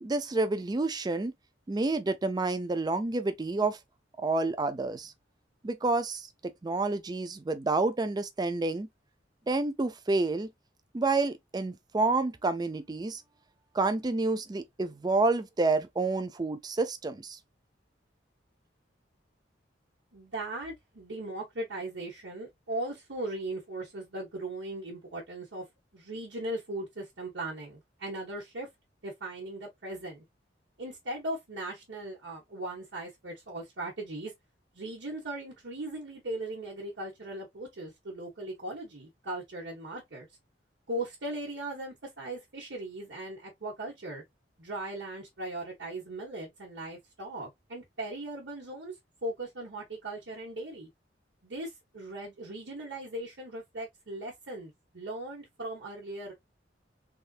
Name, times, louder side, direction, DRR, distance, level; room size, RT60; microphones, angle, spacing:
voice 1, 0.0-1.3 1.7-3.8 4.2-5.1 5.6-8.9 9.5-10.5 10.9-13.2 13.7-17.4, right 3 dB, 20° right, 0.4 m, -29 dB
voice 2, 20.1-25.7 25.9-28.7 29.0-30.2 30.8-34.3 34.7-40.3 40.9-44.2 44.6-49.0 49.2-50.9 51.4-56.3, right 1 dB, 75° right, 1.1 m, -38 dB
3.5 x 2.7 x 2.4 m
head